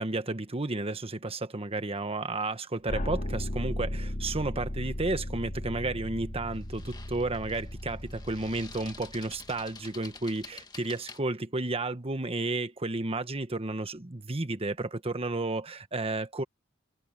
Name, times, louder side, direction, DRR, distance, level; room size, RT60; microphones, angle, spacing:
voice 1, 0.0-16.4, right 2 dB, 30° right, 1.3 m, -32 dB
sound 1, 2.9-9.8, left 1 dB, 45° left, 2.2 m, -36 dB
sound 2, 4.9-5.1 6.5-11.2, left 4 dB, 20° left, 1.8 m, -49 dB
head